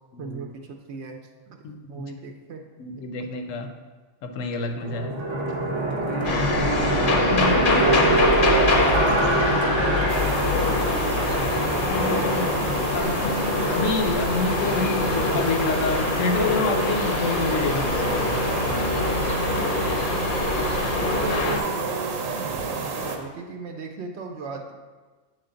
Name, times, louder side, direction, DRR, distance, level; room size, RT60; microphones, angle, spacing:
voice 1, 0.2-1.2 1.5-1.6 1.9-2.6 2.9-3.3 5.3-5.4 7.3-9.7 11.0-11.4 12.7-13.1 21.0-24.7, right 4 dB, 65° right, 3 dB, 0.8 m, -36 dB
voice 2, 1.6-2.1 2.8-3.7 4.2-5.2 7.3-7.5 11.9-12.5 12.9-19.0, left 4 dB, 80° left, 6 dB, 1.0 m, -28 dB
sound 1, 4.8-15.5, right 2 dB, 30° right, 0.5 m, -26 dB
sound 2, 6.2-21.6, left 3 dB, 50° left, 0.7 m, -24 dB
sound 3, 10.1-23.2, right 4 dB, 90° right, 1.1 m, -30 dB
8.1 x 3.3 x 3.8 m, 1.3 s
omnidirectional pair, 1.3 m